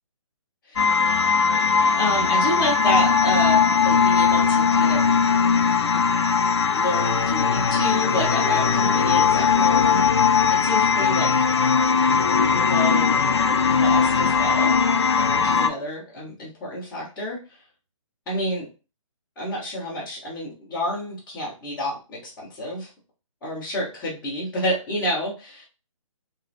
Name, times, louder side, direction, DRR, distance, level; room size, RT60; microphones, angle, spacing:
sound 1, 0.8-15.7, left 6 dB, 50° left, 0.5 m, -19 dB
voice 1, 1.9-5.2 5.9-6.1 6.7-11.5 12.5-13.2 13.8-14.7 15.3-17.4 18.3-18.7 19.4-22.9 23.4-25.6, left 1 dB, 5° left, -16 dB, 0.7 m, -29 dB
sound 2, 8.1-12.3 13.1-13.2, equal, 75° right, 1.8 m, -40 dB
4.4 x 3.0 x 2.5 m, 0.31 s
hypercardioid pair, 175°, 18 cm